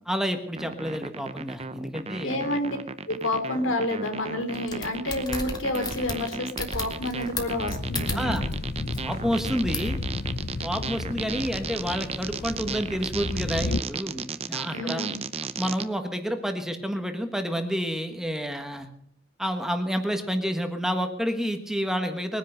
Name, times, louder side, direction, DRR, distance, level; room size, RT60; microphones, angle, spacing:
voice 1, 0.0-2.4 8.1-8.4 9.0-10.0 10.6-15.1 15.6-18.9 19.4-22.4, equal, 5° right, 6 dB, 1.4 m, -29 dB
sound 1, 0.6-15.8, right 5 dB, 30° right, 0.7 m, -35 dB
voice 2, 2.2-2.8 3.1-8.4 14.7-15.2, left 1 dB, 80° left, 7 dB, 3.1 m, -29 dB
sound 2, 4.5-8.6 8.9-9.0 9.7-9.9, left 3 dB, 20° left, 2.0 m, -33 dB
sound 3, 6.8-13.8, left 2 dB, 50° left, 0.7 m, -33 dB
21.5 x 10.0 x 6.6 m, 0.69 s
head